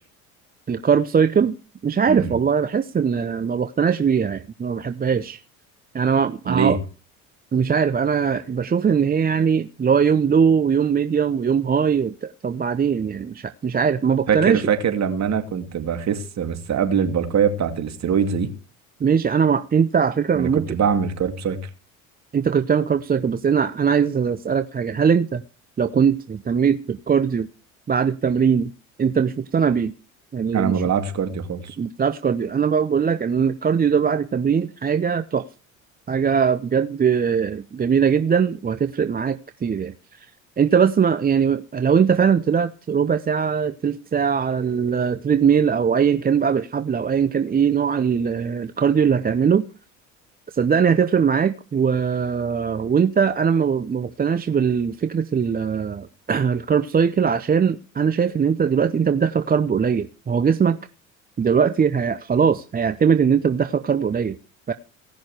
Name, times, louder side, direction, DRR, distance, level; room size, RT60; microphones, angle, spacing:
voice 1, 0.7-1.6 1.8-5.4 5.9-6.8 7.5-14.6 19.0-20.7 22.3-25.4 25.8-27.5 27.9-28.7 29.0-29.9 30.3-30.8 31.8-35.5 36.1-40.3 40.6-49.6 50.5-60.8 61.4-64.4 64.7-64.8, right 6 dB, 25° right, 0.8 m, -21 dB
voice 2, 6.5-6.8 14.3-18.5 20.3-21.7 30.5-31.8, right 7 dB, 45° right, 2.6 m, -23 dB
17.5 x 6.3 x 8.1 m
hypercardioid pair, 65°, 39 cm